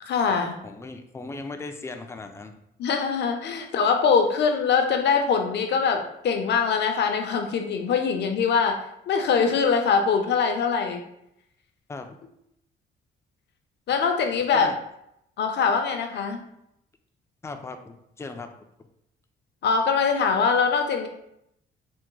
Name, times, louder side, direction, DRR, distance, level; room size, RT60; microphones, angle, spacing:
voice 1, 0.0-0.6 2.8-11.0 13.9-14.7 15.4-16.4 19.6-21.1, left 5 dB, 60° left, 5 dB, 0.6 m, -23 dB
voice 2, 0.6-2.6 11.9-12.2 14.5-14.7 17.4-18.5, left 3 dB, 15° left, 6 dB, 0.3 m, -37 dB
3.5 x 2.1 x 3.0 m, 0.78 s
cardioid pair, 90°, 20 cm